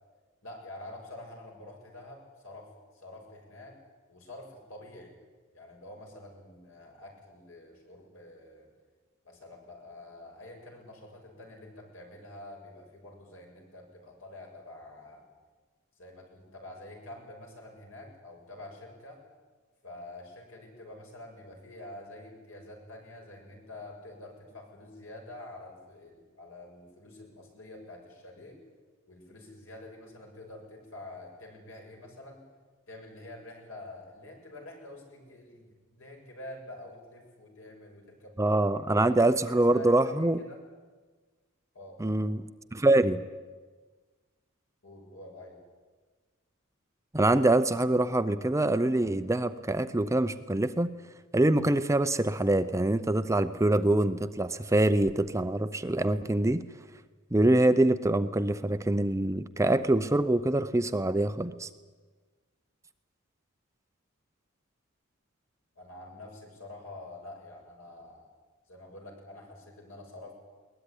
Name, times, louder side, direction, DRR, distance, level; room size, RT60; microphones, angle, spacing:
voice 1, 0.4-3.8 4.1-5.2 5.5-8.7 9.2-15.2 15.9-19.2 19.8-28.6 29.1-32.4 32.9-38.4 38.9-39.2 39.4-40.6 41.7-42.2 44.8-45.6 65.7-68.3 68.7-70.3, left 1 dB, 70° left, 1 dB, 6.8 m, -47 dB
voice 2, 38.4-40.4 42.0-42.4 42.7-43.2 47.1-50.9 51.3-56.6 57.3-61.7, right 1 dB, 15° right, 11 dB, 0.6 m, -25 dB
21.5 x 19.5 x 9.9 m, 1.4 s
head